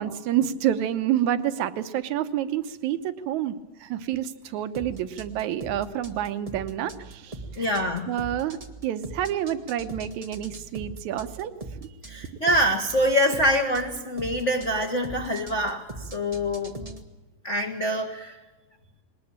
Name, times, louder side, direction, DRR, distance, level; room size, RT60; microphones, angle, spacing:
voice 1, 0.0-7.7 8.1-11.5 11.8-11.9, right 11 dB, 70° right, 12 dB, 2.2 m, -28 dB
sound 1, 4.7-17.0, right 2 dB, 50° right, 0.4 m, -40 dB
voice 2, 7.6-8.1 12.0-16.7 17.4-18.4, equal, 45° left, 3 dB, 0.9 m, -25 dB
21.0 x 19.5 x 8.7 m, 1.1 s
omnidirectional pair, 3.8 m